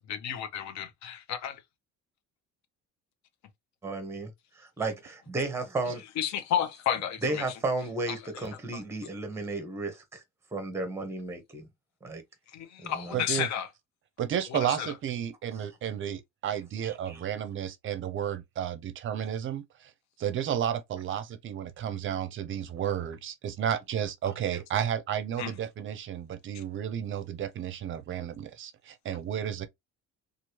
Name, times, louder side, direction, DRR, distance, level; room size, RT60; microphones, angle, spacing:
voice 1, 0.1-1.6 6.2-7.4 8.1-8.5 8.7-8.8 12.5-13.7 14.5-14.9 25.4-25.5, left 9 dB, 65° left, 0.8 m, -32 dB
voice 2, 3.8-6.0 7.2-10.2 10.5-11.7 12.0-12.2 12.8-13.2 16.8-17.2, right 2 dB, 10° right, 0.8 m, -34 dB
voice 3, 13.1-13.5 14.2-19.9 20.2-29.7, right 9 dB, 40° right, 0.6 m, -32 dB
3.0 x 2.5 x 2.9 m
cardioid pair, 145°, 30 cm